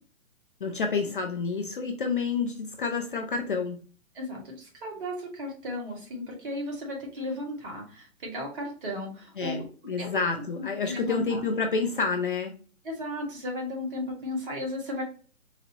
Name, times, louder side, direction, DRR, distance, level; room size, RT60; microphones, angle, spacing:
voice 1, 0.6-3.8 9.4-12.5, left 4 dB, 40° left, 4 dB, 0.4 m, -29 dB
voice 2, 4.1-9.6 10.0-10.1 10.5-11.4 12.8-15.0, left 1 dB, 40° right, 0 dB, 1.7 m, -35 dB
4.0 x 2.7 x 2.8 m, 0.39 s
hypercardioid pair, 140°, 41 cm